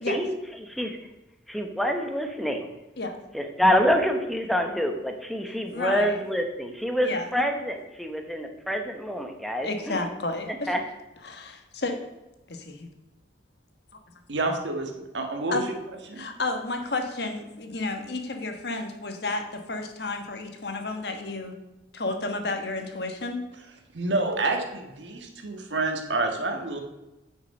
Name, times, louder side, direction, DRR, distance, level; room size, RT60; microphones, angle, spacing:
voice 1, 0.6-1.0 1.5-2.7 3.3-10.0 10.7-10.8, equal, ahead, 4 dB, 0.9 m, -26 dB
voice 2, 5.7-6.2 7.0-7.3 9.6-10.7 11.2-12.0 12.5-12.9 15.5-15.6 16.2-21.5 21.9-23.5, left 2 dB, 65° left, 5 dB, 1.3 m, -31 dB
voice 3, 14.3-15.6 16.1-16.2 23.9-26.8, right 2 dB, 80° right, 3 dB, 1.5 m, -28 dB
9.3 x 6.1 x 5.3 m, 1.0 s
head